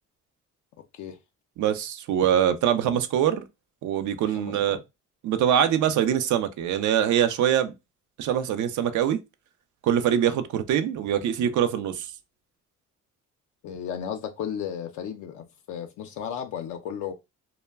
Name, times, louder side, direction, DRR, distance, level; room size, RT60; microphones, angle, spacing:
voice 1, 1.6-3.4 3.8-4.8 5.2-7.7 8.2-9.2 9.8-12.1, right 9 dB, 75° right, 0.5 m, -23 dB
voice 2, 4.3-4.8 13.6-17.1, left 8 dB, 80° left, 0.5 m, -34 dB
2.2 x 2.1 x 3.3 m
cardioid pair, 90°, 30 cm